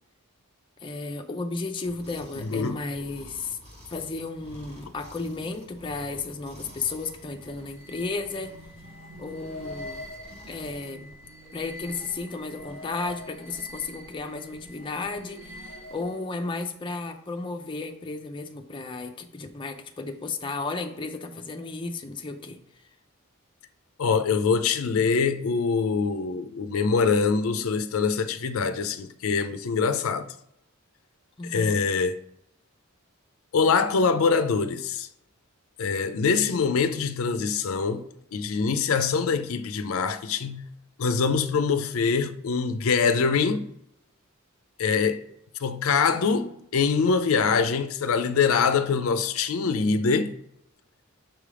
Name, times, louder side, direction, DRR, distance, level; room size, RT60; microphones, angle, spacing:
voice 1, 0.8-3.6 3.9-8.5 9.2-10.0 10.5-11.1 11.5-22.6 31.4-31.8, left 3 dB, 25° left, 0.5 m, -34 dB
sound 1, 1.9-10.9, equal, 30° right, 1.5 m, -50 dB
voice 2, 2.4-2.8 24.0-30.3 31.4-32.2 33.5-35.1 35.8-38.0 38.3-40.6 41.0-43.7 44.8-45.3 45.6-50.3, left 5 dB, 80° left, 0.4 m, -24 dB
sound 2, 6.6-16.3, left 1 dB, 70° right, 1.0 m, -44 dB
6.1 x 3.3 x 4.9 m
head